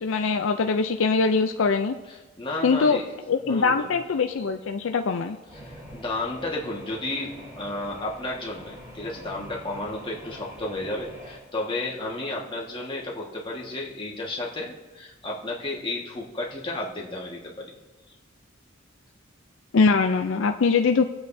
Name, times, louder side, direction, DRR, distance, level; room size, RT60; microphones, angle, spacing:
voice 1, 0.0-2.0 2.6-3.0 3.3-5.4 19.7-21.0, left 4 dB, 70° left, 6 dB, 0.5 m, -22 dB
voice 2, 2.4-3.1 3.4-3.9 5.5-17.7, left 2 dB, 25° left, -3 dB, 1.6 m, -32 dB
sound 1, 5.5-11.4, equal, 25° right, 4.5 m, -44 dB
22.0 x 7.9 x 2.7 m, 1.2 s
head